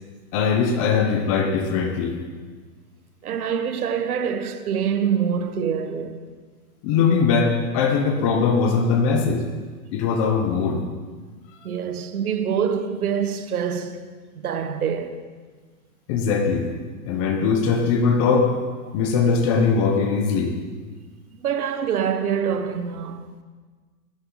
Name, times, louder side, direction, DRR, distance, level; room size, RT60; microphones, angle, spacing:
voice 1, 0.3-2.2 6.8-9.4 9.9-10.8 16.1-16.7 17.1-18.5 18.9-20.5, left 5 dB, 20° left, 1.0 m, -20 dB
voice 2, 3.2-6.3 11.6-14.1 14.3-15.2 18.9-19.0 21.4-23.3, right 7 dB, 60° right, 1.5 m, -25 dB
19.5 x 17.0 x 4.0 m
hypercardioid pair, 165°, 49 cm